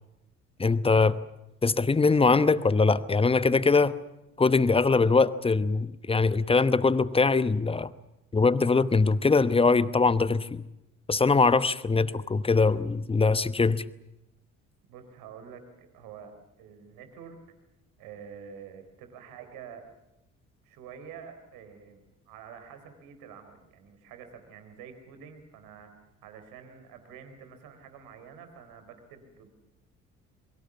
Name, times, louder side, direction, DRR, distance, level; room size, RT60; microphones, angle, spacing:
voice 1, 0.6-1.1 1.6-3.9 4.4-7.9 8.3-10.6 11.1-13.8, left 4 dB, 15° left, 16 dB, 1.0 m, -22 dB
voice 2, 14.9-17.4 18.0-19.9 20.6-25.9 26.2-29.5, right 7 dB, 60° right, 8 dB, 4.0 m, -47 dB
27.0 x 23.5 x 7.1 m, 0.90 s
figure-of-eight pair, 50°, 39 cm